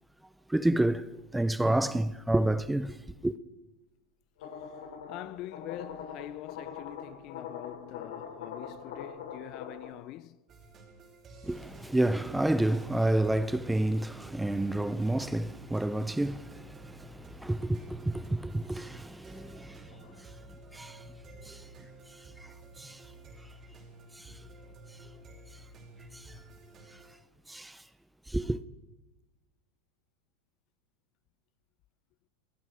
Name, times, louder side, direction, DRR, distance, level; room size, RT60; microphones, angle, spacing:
voice 1, 0.5-3.0 3.2-3.3 11.4-19.9 20.7-21.0 21.5-21.6 22.4-22.5 22.8-23.0 24.2-24.3 26.1-26.2 27.5-27.8 28.3-28.6, right 1 dB, 5° right, 0.7 m, -29 dB
sound 1, 4.4-9.9, left 6 dB, 80° left, 6.6 m, -43 dB
voice 2, 5.1-10.4 15.1-15.3 19.9-20.3, left 15 dB, 45° left, 0.7 m, -44 dB
sound 2, 10.5-27.1, right 1 dB, 30° right, 6.1 m, -51 dB
27.0 x 20.0 x 5.0 m
supercardioid pair, 140°, 0 cm